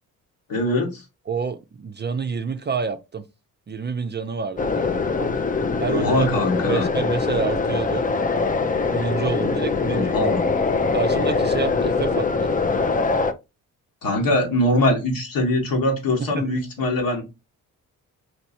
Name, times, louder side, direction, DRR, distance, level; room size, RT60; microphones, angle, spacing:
voice 1, 0.5-1.0 4.8-5.3 5.9-6.9 9.9-10.4 14.0-17.2, left 1 dB, 65° left, 1.7 m, -22 dB
voice 2, 1.3-3.2 3.7-4.9 5.8-6.3 6.6-8.0 8.9-10.1 10.9-12.5 16.3-16.5, right 5 dB, 30° right, 0.5 m, -28 dB
sound 1, 4.6-13.3, left 4 dB, 25° left, 0.5 m, -23 dB
4.5 x 3.0 x 2.7 m
supercardioid pair, 65°, 37 cm